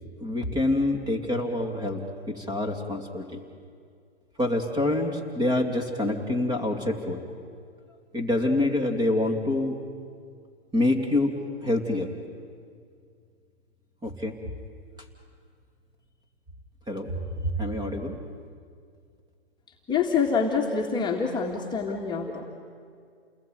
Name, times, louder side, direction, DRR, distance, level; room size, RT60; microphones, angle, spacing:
voice 1, 0.2-3.4 4.4-7.2 8.1-9.8 10.7-11.3 11.6-12.1 14.0-14.3 16.9-17.1 17.6-18.2 21.9-22.0 22.3-22.4, left 2 dB, 10° right, 5 dB, 2.7 m, -26 dB
voice 2, 19.9-22.5, left 5 dB, 15° left, -2 dB, 2.0 m, -26 dB
29.0 x 20.0 x 9.4 m, 2.2 s
hypercardioid pair, 130°, 33 cm